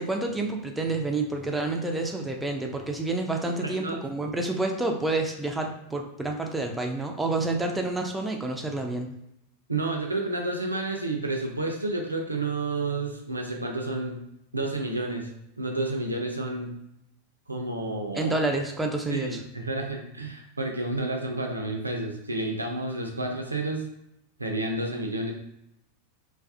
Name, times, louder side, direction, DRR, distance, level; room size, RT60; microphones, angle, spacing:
voice 1, 0.0-9.2 18.1-19.4, right 2 dB, 5° right, 2 dB, 0.3 m, -29 dB
voice 2, 3.6-4.0 9.7-14.2 14.5-15.3 15.6-16.8 17.5-18.4 19.1-23.8 24.4-25.3, right 2 dB, 80° right, 1 dB, 0.4 m, -30 dB
2.3 x 2.2 x 2.4 m, 0.80 s
figure-of-eight pair, 90°, 0 cm